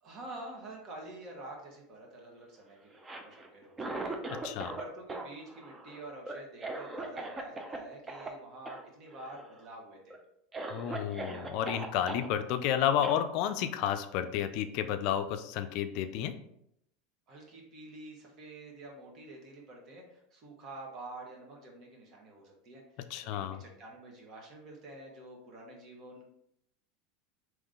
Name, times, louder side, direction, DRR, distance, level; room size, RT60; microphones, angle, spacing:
voice 1, 0.0-10.2 17.3-22.8 23.2-26.3, right 2 dB, 45° right, 0 dB, 1.3 m, -48 dB
Cough, 2.9-4.8 5.1-7.8 8.1-8.3 8.6-8.8 9.1-9.6 10.1-10.2 10.5-12.3 13.0-13.2, right 2 dB, 20° right, 0.6 m, -40 dB
voice 2, 10.7-16.3 23.1-23.6, left 10 dB, 60° left, 9 dB, 0.4 m, -31 dB
3.6 x 3.1 x 3.7 m, 0.76 s
hypercardioid pair, 90°, 0 cm